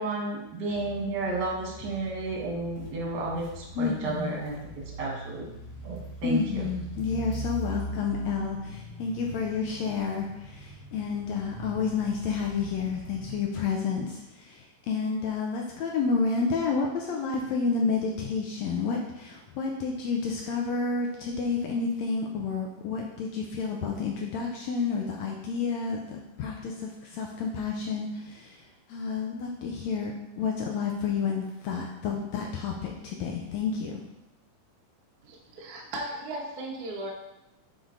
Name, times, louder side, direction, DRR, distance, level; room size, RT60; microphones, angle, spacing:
voice 1, 0.0-4.6 4.9-5.5 5.8-6.6, right 2 dB, 45° right, -2 dB, 1.5 m, -32 dB
sound 1, 0.7-13.4, right 2 dB, 40° left, 1.4 m, -41 dB
voice 2, 3.7-4.3 6.2-28.6 28.9-34.0, left 5 dB, 75° left, 0 dB, 1.6 m, -30 dB
voice 3, 35.2-37.1, right 1 dB, 80° right, -2 dB, 0.8 m, -36 dB
8.0 x 4.0 x 3.9 m, 0.95 s
omnidirectional pair, 3.9 m